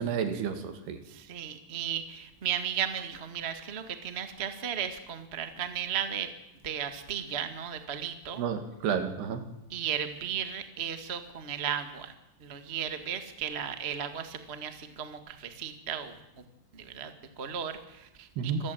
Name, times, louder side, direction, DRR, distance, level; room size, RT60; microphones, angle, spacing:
voice 1, 0.0-1.0 8.4-9.4 18.4-18.6, right 7 dB, 75° right, 8 dB, 4.1 m, -31 dB
voice 2, 1.1-6.3 6.6-8.4 9.7-12.1 12.4-16.4 16.7-18.7, right 9 dB, 50° right, 8 dB, 0.7 m, -35 dB
26.5 x 15.0 x 9.3 m, 0.91 s
omnidirectional pair, 4.7 m